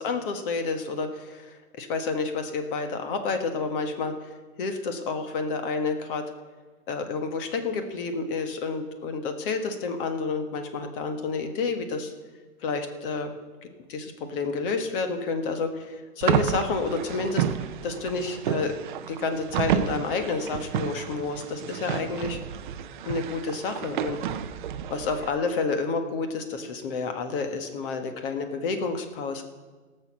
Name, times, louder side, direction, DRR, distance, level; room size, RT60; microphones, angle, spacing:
voice 1, 0.0-4.3 4.6-6.2 6.9-12.1 12.6-13.3 13.9-17.4 17.8-18.7 19.1-22.4 23.0-24.2 24.9-29.4, left 4 dB, 40° left, 7 dB, 1.5 m, -29 dB
sound 1, 16.2-25.3, right 9 dB, 35° right, 0.6 m, -30 dB
17.5 x 6.8 x 6.3 m, 1.4 s
hypercardioid pair, 145°, 44 cm